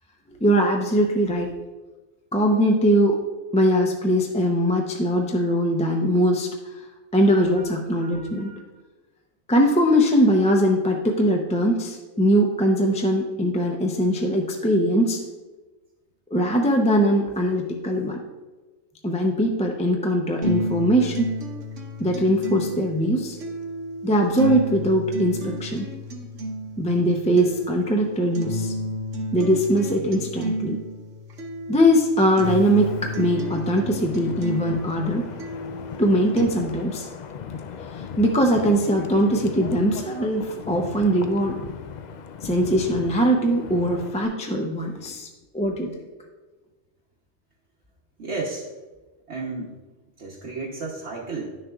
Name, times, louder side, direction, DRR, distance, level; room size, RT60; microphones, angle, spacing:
voice 1, 0.4-1.5 2.3-3.2 3.5-6.5 7.1-8.5 9.5-15.2 16.3-18.2 19.0-21.3 22.0-23.4 24.0-25.9 26.8-28.7 29.3-30.8 31.7-32.9 33.2-35.2 36.0-37.1 37.9-41.6 42.4-45.3 45.5-45.9, equal, 10° left, 1 dB, 0.4 m, -21 dB
voice 2, 7.3-7.6 8.0-8.6 48.2-48.7 49.3-49.8 50.2-51.6, right 3 dB, 65° right, -4 dB, 1.2 m, -33 dB
sound 1, 20.4-36.4, equal, 80° right, 1.2 m, -31 dB
Wind, 32.4-44.3, left 6 dB, 70° left, 0.4 m, -38 dB
10.5 x 6.6 x 2.4 m, 1.2 s
omnidirectional pair, 1.3 m